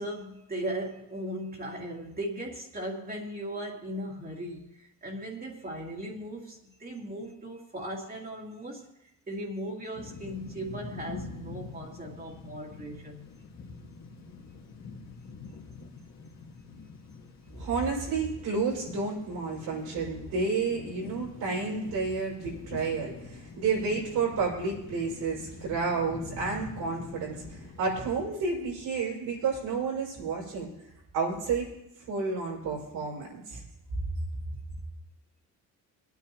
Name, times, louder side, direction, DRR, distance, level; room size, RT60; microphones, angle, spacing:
voice 1, 0.0-8.9 9.3-13.2, right 1 dB, 25° right, -2 dB, 2.4 m, -38 dB
sound 1, 10.0-28.3, left 4 dB, 50° left, 2.0 m, -45 dB
voice 2, 17.6-30.7 31.1-31.7 32.1-33.6, right 4 dB, 85° right, -5 dB, 5.5 m, -31 dB
21.0 x 9.3 x 3.0 m, 0.84 s
cardioid pair, 100°, 35 cm